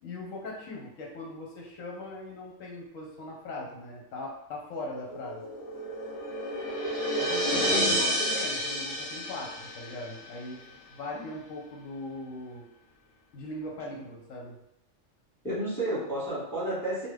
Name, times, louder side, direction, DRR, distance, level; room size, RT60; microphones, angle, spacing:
voice 1, 0.0-5.5 7.2-12.7 13.3-14.6, left 2 dB, 80° left, -1 dB, 1.1 m, -40 dB
sound 1, 5.0-10.3, equal, 55° left, 0.4 m, -30 dB
voice 2, 7.5-8.4 13.9-14.0 15.4-17.1, right 1 dB, ahead, -10 dB, 1.4 m, -32 dB
2.8 x 2.3 x 3.2 m, 0.80 s
omnidirectional pair, 1.3 m